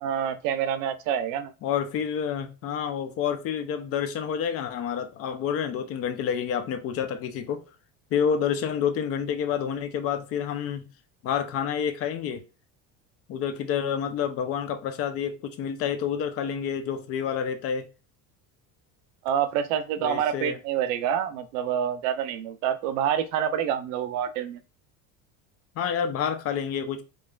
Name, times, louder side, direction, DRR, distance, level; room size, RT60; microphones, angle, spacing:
voice 1, 0.0-1.5 19.2-24.6, right 9 dB, 85° right, 0.7 m, -27 dB
voice 2, 1.6-7.6 8.1-10.9 11.2-12.4 13.3-17.9 20.0-20.6 25.8-27.0, left 8 dB, 40° left, 0.5 m, -28 dB
4.8 x 2.8 x 2.4 m
cardioid pair, 165°, 38 cm